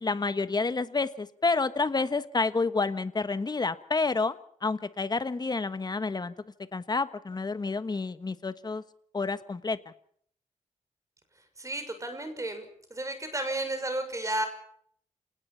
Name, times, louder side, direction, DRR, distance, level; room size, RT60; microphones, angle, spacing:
voice 1, 0.0-4.4 4.6-6.3 6.7-8.8 9.1-9.8, left 3 dB, 30° left, 12 dB, 1.4 m, -29 dB
voice 2, 11.6-14.5, right 1 dB, 25° right, 8 dB, 6.2 m, -33 dB
29.0 x 19.0 x 5.8 m, 0.63 s
cardioid pair, 90°, 13 cm